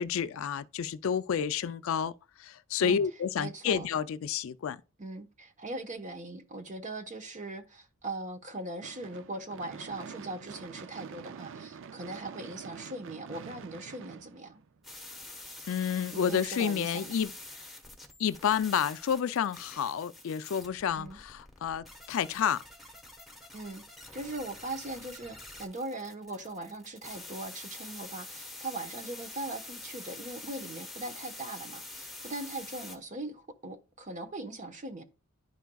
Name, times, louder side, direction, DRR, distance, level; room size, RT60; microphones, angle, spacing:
voice 1, 0.0-2.1 2.4-4.8 15.7-17.3 18.2-22.6, left 7 dB, 65° left, 0.4 m, -30 dB
voice 2, 3.4-3.9 5.0-14.6 16.1-17.1 21.0-21.2 23.5-23.8 24.1-35.0, right 2 dB, 35° right, 1.0 m, -40 dB
Gunshot gunfire / Fireworks, 8.8-15.1, right 6 dB, 60° right, 0.4 m, -46 dB
sound 1, 14.8-33.0, left 2 dB, ahead, 1.1 m, -46 dB
11.0 x 4.6 x 2.3 m
head